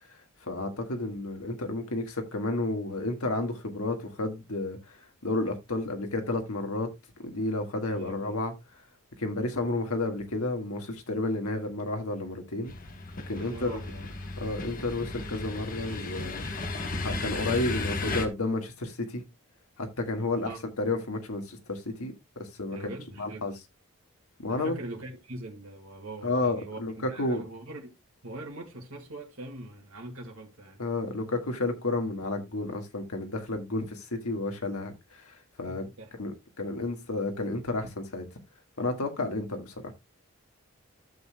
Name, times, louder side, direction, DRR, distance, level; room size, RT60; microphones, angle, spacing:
voice 1, 0.1-6.9 7.2-8.5 9.2-12.7 13.3-13.8 14.4-16.5 17.0-19.2 19.8-22.1 22.4-23.5 24.4-24.7 26.2-27.4 30.8-35.9 36.2-38.2 38.8-39.9, left 2 dB, 90° left, 1.7 m, -31 dB
voice 2, 7.9-8.4 13.4-14.1 20.3-20.6 22.7-23.5 24.5-27.9 28.2-30.8 35.6-36.1, right 1 dB, 75° right, 2.1 m, -42 dB
sound 1, 12.7-18.3, left 2 dB, 40° left, 1.2 m, -35 dB
13.5 x 6.7 x 2.2 m
head